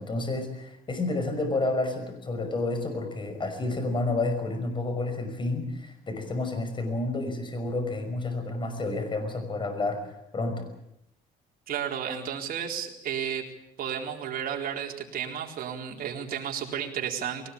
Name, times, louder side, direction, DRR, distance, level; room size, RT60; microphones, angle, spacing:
voice 1, 0.0-10.7, left 2 dB, 30° left, 7 dB, 5.7 m, -30 dB
voice 2, 11.7-13.5 13.8-17.5, right 8 dB, 60° right, 1 dB, 4.2 m, -32 dB
21.5 x 19.0 x 8.6 m, 0.77 s
cardioid pair, 110°, 17 cm